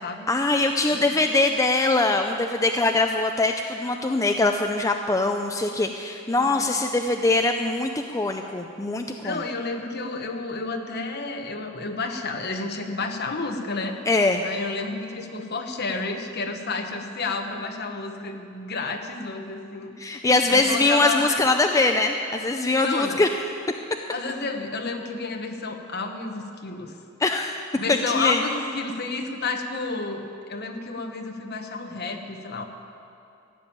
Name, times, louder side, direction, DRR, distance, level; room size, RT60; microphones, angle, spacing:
voice 1, 0.3-9.4 14.1-14.4 20.0-23.3 27.2-27.5 27.9-28.4, left 2 dB, 15° left, 4 dB, 0.5 m, -22 dB
voice 2, 9.2-14.0 14.4-19.9 20.5-21.4 22.7-23.2 24.1-26.9 27.8-30.2 30.5-32.6, left 3 dB, 55° left, 4 dB, 1.3 m, -31 dB
14.5 x 7.2 x 9.2 m, 2.6 s
head